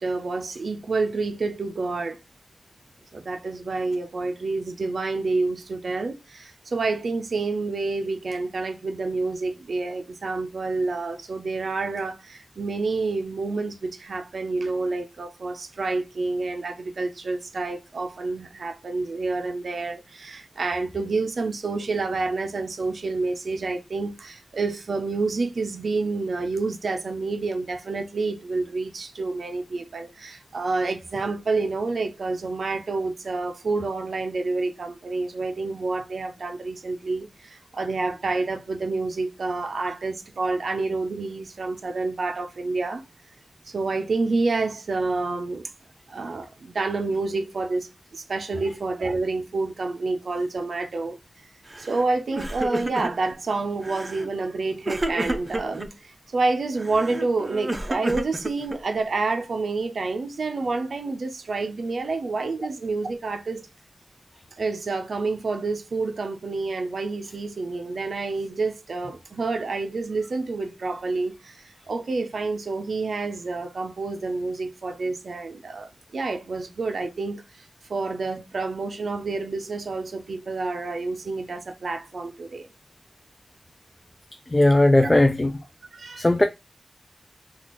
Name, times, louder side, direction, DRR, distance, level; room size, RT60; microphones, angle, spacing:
voice 1, 0.0-2.2 3.1-43.0 43.7-45.7 46.1-51.5 51.8-63.7 64.6-82.7 85.0-85.1 85.9-86.3, right 3 dB, 80° right, 0.4 m, -28 dB
Crying sobbing, 51.7-52.0 52.3-53.3 53.8-54.3 54.8-55.9 56.8-59.0, right 1 dB, 25° right, 0.6 m, -31 dB
voice 2, 84.5-85.5 86.2-86.4, left 1 dB, 25° left, 0.4 m, -17 dB
3.0 x 2.3 x 4.1 m
wide cardioid pair, 75°, 0 cm